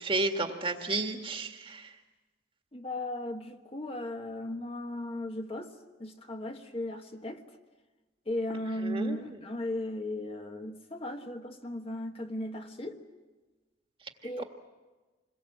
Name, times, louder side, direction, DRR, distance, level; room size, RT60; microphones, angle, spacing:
voice 1, 0.0-2.0 8.8-9.4 14.4-14.5, right 2 dB, 30° right, 5 dB, 1.8 m, -32 dB
voice 2, 2.7-5.7 6.0-7.4 8.3-13.0 14.2-14.4, left 1 dB, 30° left, 4 dB, 1.4 m, -36 dB
27.0 x 22.0 x 7.7 m, 1.3 s
head